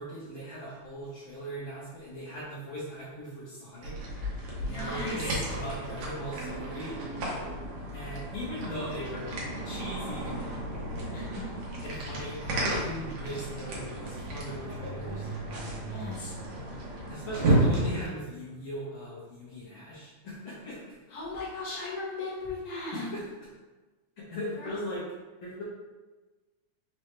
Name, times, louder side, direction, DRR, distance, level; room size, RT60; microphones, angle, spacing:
voice 1, 0.0-4.0 4.6-7.0 7.9-9.3 9.6-10.4 11.8-15.3 17.1-21.0 22.9-23.5 24.2-25.0 25.4-25.6, equal, 80° left, -9 dB, 1.1 m, -38 dB
sound 1, 3.8-18.1, right 1 dB, 75° right, 2.0 m, -33 dB
voice 2, 4.7-5.4 11.1-11.5 15.8-16.3 21.1-23.1 24.5-24.8, left 3 dB, 55° left, -7 dB, 1.1 m, -37 dB
5.2 x 2.2 x 3.1 m, 1.2 s
omnidirectional pair, 3.4 m